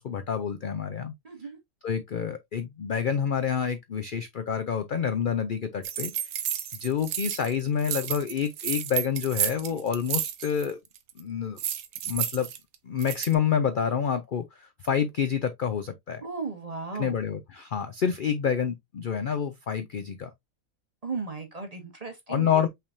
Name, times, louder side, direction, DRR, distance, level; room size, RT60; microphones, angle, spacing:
voice 1, 0.0-1.1 1.8-6.3 6.8-10.8 11.2-11.6 12.0-12.5 12.8-16.2 17.0-20.3 22.3-22.7, left 7 dB, 60° left, 0.5 m, -28 dB
voice 2, 1.2-1.6 16.2-17.2 21.0-22.6, right 4 dB, 35° right, 0.8 m, -35 dB
sound 1, 5.8-7.5 7.8-10.7 11.0-11.2 11.6-13.3, right 10 dB, 85° right, 1.2 m, -31 dB
5.7 x 3.4 x 2.6 m
omnidirectional pair, 1.5 m